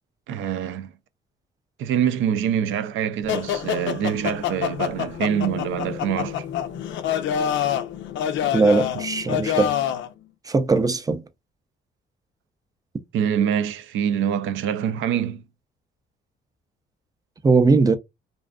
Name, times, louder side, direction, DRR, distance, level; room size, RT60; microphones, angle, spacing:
voice 1, 0.3-0.9 1.8-6.4 13.1-15.4, right 9 dB, 80° right, 0.4 m, -25 dB
sound 1, 3.3-10.1, left 9 dB, 70° left, 0.4 m, -26 dB
voice 2, 8.5-9.7 10.4-11.2 17.4-18.0, right 4 dB, 20° right, 0.4 m, -19 dB
2.5 x 2.3 x 2.2 m
cardioid pair, 90°, 20 cm